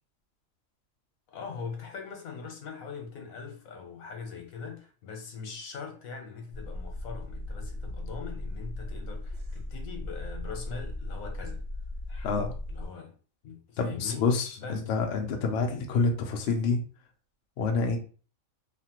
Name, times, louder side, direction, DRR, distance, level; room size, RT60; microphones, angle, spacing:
voice 1, 1.3-11.6 12.1-12.3 12.7-13.1 13.4-14.3 14.6-14.8, left 5 dB, 85° left, 1.2 m, -41 dB
sound 1, 6.5-12.9, left 1 dB, 65° right, 0.8 m, -37 dB
voice 2, 13.8-16.8 17.6-18.0, left 4 dB, 60° left, 0.8 m, -27 dB
3.1 x 2.2 x 2.9 m
omnidirectional pair, 1.4 m